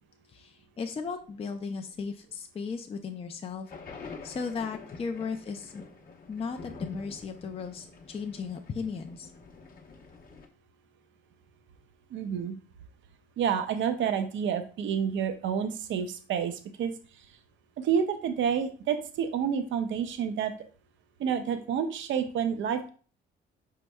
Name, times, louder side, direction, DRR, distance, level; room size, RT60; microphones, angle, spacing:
voice 1, 0.3-3.7 4.0-5.8 6.3-9.3, left 5 dB, 30° left, 4 dB, 0.5 m, -36 dB
sound 1, 3.7-10.5, left 4 dB, 45° left, 0.9 m, -46 dB
voice 2, 12.1-12.6 13.4-16.9 17.8-20.5 21.2-22.9, right 7 dB, 70° right, 8 dB, 0.6 m, -29 dB
5.1 x 4.6 x 2.2 m, 0.39 s
cardioid pair, 90°, 20 cm